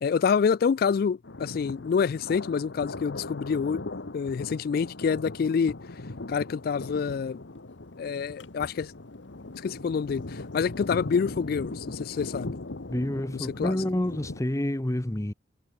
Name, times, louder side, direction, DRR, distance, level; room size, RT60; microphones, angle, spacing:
voice 1, 0.0-3.8 4.1-5.7 6.3-7.4 8.0-8.9 9.5-12.6 13.3-13.8, left 6 dB, 55° left, 0.3 m, -27 dB
Thunder, 1.2-14.4, left 2 dB, 80° left, 1.3 m, -39 dB
voice 2, 12.9-15.3, left 1 dB, 15° left, 0.8 m, -28 dB
head